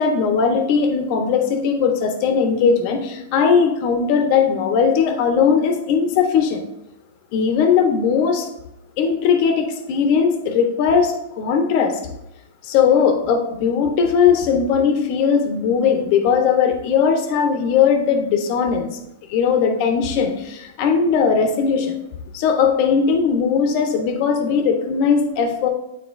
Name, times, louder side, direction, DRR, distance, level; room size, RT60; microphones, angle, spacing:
voice 1, 0.0-6.6 7.3-8.5 9.0-12.0 12.6-18.9 19.3-21.9 22.3-25.7, left 6 dB, 50° left, 5 dB, 1.0 m, -18 dB
9.1 x 4.1 x 2.6 m, 0.87 s
hypercardioid pair, 140°, 0 cm